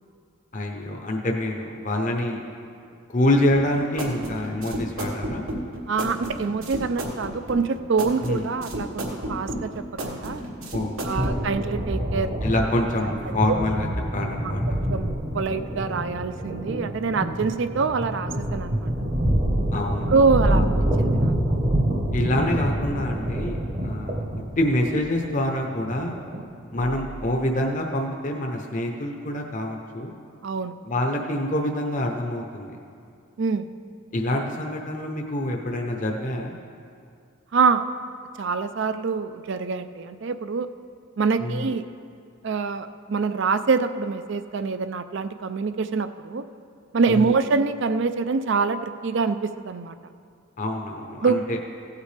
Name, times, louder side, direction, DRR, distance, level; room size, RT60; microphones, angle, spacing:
voice 1, 0.5-2.4 3.1-5.4 8.2-8.4 10.7-11.3 12.4-13.9 14.1-14.6 19.7-20.2 20.5-20.7 22.1-23.6 23.8-24.2 24.6-26.2 26.7-30.1 30.8-32.8 34.1-36.6 41.4-41.7 47.1-47.3 50.6-51.6, left 1 dB, 35° left, 2 dB, 0.7 m, -26 dB
sound 1, 3.5-11.4, right 1 dB, 75° right, 1.6 m, -32 dB
voice 2, 5.9-10.4 11.0-12.3 14.9-18.9 20.1-20.7 21.0-21.3 30.4-30.7 33.4-33.7 37.5-37.8 38.4-40.7 41.2-41.8 42.4-46.4 46.9-49.9 51.2-51.4, right 4 dB, 55° right, 11 dB, 0.4 m, -25 dB
sound 2, 11.1-27.3, right 1 dB, 35° right, 0.9 m, -26 dB
16.0 x 8.3 x 3.3 m, 2.3 s
head